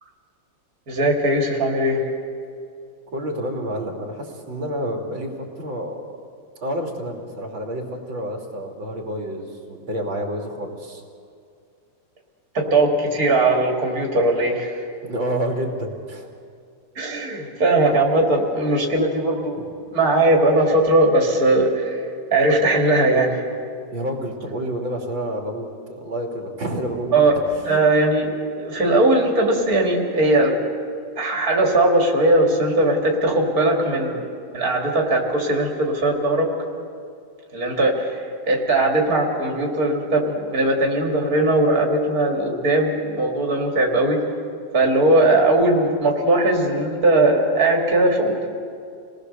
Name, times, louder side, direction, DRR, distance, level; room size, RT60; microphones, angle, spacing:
voice 1, 0.9-2.0 12.5-14.8 17.0-19.6 19.9-22.0 22.3-23.5 27.1-27.3 27.6-30.6 31.2-34.2 34.5-36.5 37.5-44.2 44.7-48.5, right 2 dB, 50° right, 0 dB, 3.3 m, -19 dB
voice 2, 3.1-6.1 6.6-11.0 15.0-16.3 19.6-19.7 23.9-27.2 27.5-27.8, equal, 80° right, 0 dB, 3.5 m, -29 dB
29.0 x 20.0 x 6.8 m, 2.3 s
omnidirectional pair, 2.1 m